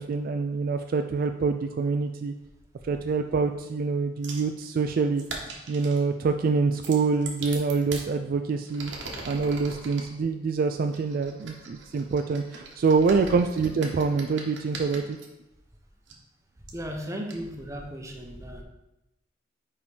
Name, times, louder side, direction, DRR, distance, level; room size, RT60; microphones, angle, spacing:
voice 1, 0.0-2.3 2.8-5.2 5.7-8.9 9.3-15.2, right 4 dB, 50° right, 6 dB, 0.3 m, -26 dB
sound 1, 4.2-4.5 5.2-6.0 6.7-8.1 8.6-10.1 10.9-15.3 16.1-16.2 16.7-16.8 17.3-17.4, right 3 dB, 85° right, 1.3 m, -40 dB
voice 2, 16.7-18.6, equal, 15° right, 1 dB, 0.9 m, -36 dB
5.0 x 4.8 x 5.1 m, 0.94 s
head